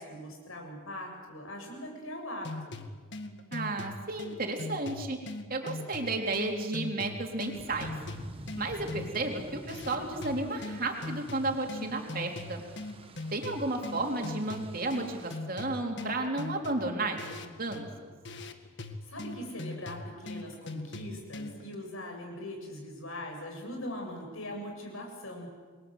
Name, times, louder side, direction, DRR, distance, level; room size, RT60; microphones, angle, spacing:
voice 1, 0.0-2.8 19.1-25.5, left 1 dB, 80° left, 1 dB, 7.6 m, -41 dB
sound 1, 2.4-21.7, left 2 dB, 55° left, 1.8 m, -41 dB
voice 2, 3.5-5.2 5.5-7.9 8.6-12.6 13.3-18.1, right 2 dB, 45° right, 2 dB, 3.6 m, -33 dB
sound 2, 7.5-15.4, right 1 dB, 25° right, 1.5 m, -48 dB
28.5 x 22.5 x 8.1 m, 1.5 s
head